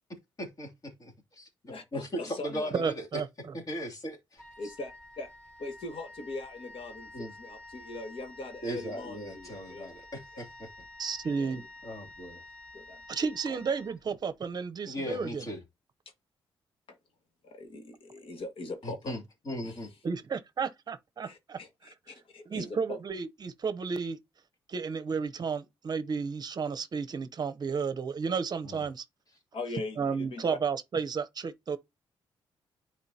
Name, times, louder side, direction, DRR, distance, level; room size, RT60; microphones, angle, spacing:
voice 1, 0.4-3.2 3.5-4.4 7.1-7.3 8.6-10.7 11.8-12.4 14.9-15.6 18.8-19.9 28.6-28.9, equal, 40° left, 2.8 m, -38 dB
voice 2, 1.7-2.9 4.6-5.3 5.6-9.9 11.4-11.7 12.7-13.0 13.5-13.6 16.9-17.0 17.4-19.2 19.6-19.8 21.2-23.0 29.5-30.6, left 2 dB, 70° left, 1.8 m, -41 dB
voice 3, 2.7-3.3 11.0-11.6 13.1-15.4 20.0-21.6 22.5-24.2 24.7-29.0 30.0-31.8, right 5 dB, 45° right, 0.7 m, -32 dB
Wind instrument woodwind instrument, 4.4-14.5, left 2 dB, 10° left, 1.3 m, -50 dB
10.5 x 4.4 x 2.8 m
cardioid pair, 105°, 9 cm